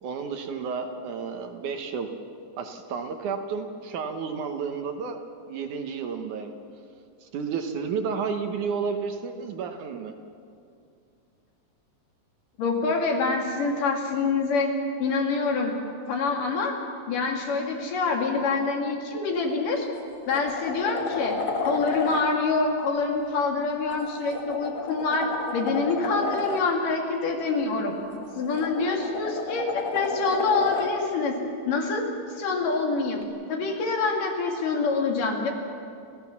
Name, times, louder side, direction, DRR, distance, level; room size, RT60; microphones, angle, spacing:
voice 1, 0.0-2.1 2.6-5.2 5.5-6.5 7.2-10.1, right 5 dB, 65° right, 5 dB, 2.4 m, -31 dB
voice 2, 12.6-14.7 15.0-15.7 16.1-16.8 17.1-19.9 20.3-25.3 25.5-28.0 28.3-31.4 31.7-32.0 32.4-33.2 33.5-35.5, left 4 dB, 70° left, 1 dB, 4.0 m, -26 dB
sound 1, 19.3-19.5 19.9-22.2 23.9-26.6 28.1-30.9 33.2-33.3, left 4 dB, 45° left, 1.9 m, -32 dB
30.0 x 15.0 x 7.2 m, 2.5 s
omnidirectional pair, 4.0 m